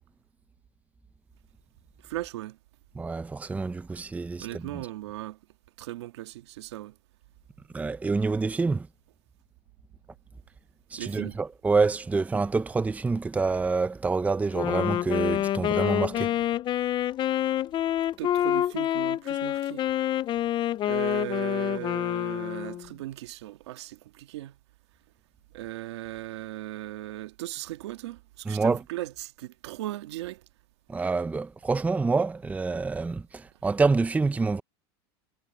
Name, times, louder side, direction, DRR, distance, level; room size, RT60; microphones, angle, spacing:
voice 1, 2.0-2.6 4.4-5.4 5.8-7.0 11.0-11.4 18.2-19.8 20.8-24.6 25.5-30.4, right 15 dB, 85° right, 1.9 m, -37 dB
voice 2, 3.0-4.5 4.7-4.9 7.7-8.9 10.9-16.3 28.5-28.8 30.9-34.6, right 4 dB, 10° right, 0.6 m, -27 dB
Wind instrument woodwind instrument, 14.5-22.9, left 12 dB, 35° left, 0.5 m, -27 dB
supercardioid pair, 120°, 14 cm